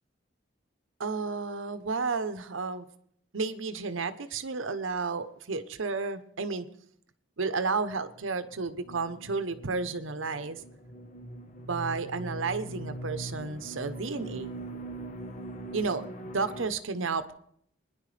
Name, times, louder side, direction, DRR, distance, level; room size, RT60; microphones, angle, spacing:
voice 1, 1.0-2.9 3.3-6.7 7.4-10.6 11.6-14.6 15.7-17.3, right 4 dB, 80° right, 11 dB, 0.8 m, -32 dB
sound 1, 8.1-16.7, right 2 dB, 40° left, 1.1 m, -42 dB
22.5 x 10.5 x 3.3 m, 0.66 s
head